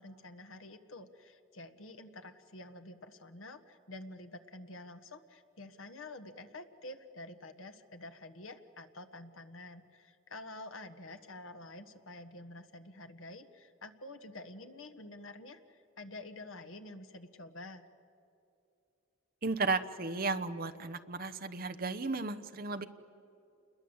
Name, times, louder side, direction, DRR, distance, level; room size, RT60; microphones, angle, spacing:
voice 1, 0.0-17.9, left 2 dB, 70° left, 8 dB, 1.4 m, -48 dB
voice 2, 19.4-22.9, right 3 dB, 45° right, 10 dB, 0.9 m, -34 dB
28.0 x 21.5 x 8.1 m, 2.7 s
head